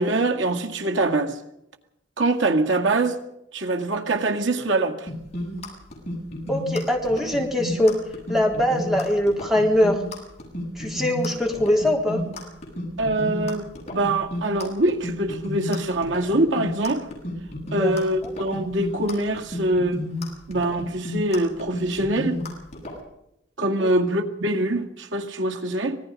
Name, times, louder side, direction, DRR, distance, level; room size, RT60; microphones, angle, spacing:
voice 1, 0.0-1.4 2.2-3.2 3.5-5.1 13.0-17.1 17.7-20.0 20.5-22.4 23.6-26.0, right 2 dB, 85° right, 2.0 m, -24 dB
sound 1, 5.1-23.0, left 1 dB, 35° left, 7.5 m, -32 dB
voice 2, 6.5-7.9 8.3-10.0 10.8-12.2 17.8-17.9 18.2-18.3 23.8-23.9, left 1 dB, ahead, 3.7 m, -22 dB
25.5 x 19.5 x 5.3 m
head